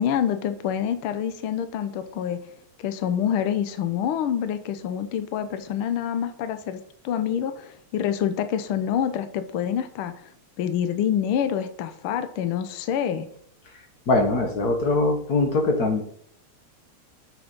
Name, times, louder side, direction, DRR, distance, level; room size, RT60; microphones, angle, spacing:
voice 1, 0.0-2.4 2.8-6.8 7.0-10.3 10.6-13.3, left 9 dB, 90° left, 9 dB, 1.1 m, -26 dB
voice 2, 14.1-16.0, left 2 dB, 70° left, 4 dB, 0.8 m, -22 dB
7.0 x 6.1 x 5.3 m, 0.63 s
omnidirectional pair, 3.3 m